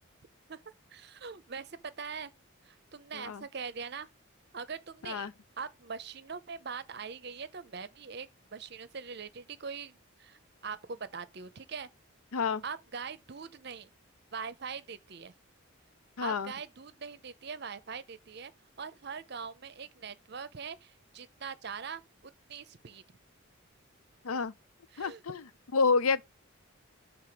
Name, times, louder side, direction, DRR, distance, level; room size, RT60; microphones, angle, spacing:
voice 1, 0.9-2.3 2.7-4.1 4.5-5.3 5.6-11.9 12.6-13.9 14.3-15.3 16.2-18.5 18.8-23.0 24.9-25.2, right 5 dB, 50° right, 0.6 m, -42 dB
voice 2, 3.1-3.4 5.0-5.3 12.3-12.6 16.2-16.5 24.2-24.5 25.0-25.5 25.7-26.2, left 4 dB, 85° left, 0.5 m, -29 dB
6.7 x 3.6 x 5.9 m
head